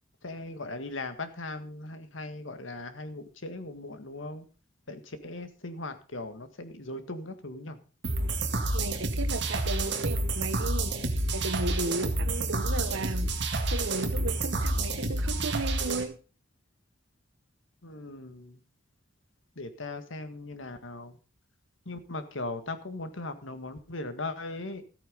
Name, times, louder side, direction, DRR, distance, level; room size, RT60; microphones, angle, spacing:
voice 1, 0.2-4.5 4.9-7.8 17.8-18.6 19.6-21.2 21.9-24.8, left 2 dB, 80° left, 9 dB, 1.8 m, -39 dB
sound 1, 8.0-16.0, right 2 dB, 60° right, 2.1 m, -29 dB
voice 2, 8.7-16.1, right 2 dB, 85° right, 12 dB, 1.3 m, -35 dB
14.0 x 9.0 x 5.2 m, 0.36 s
head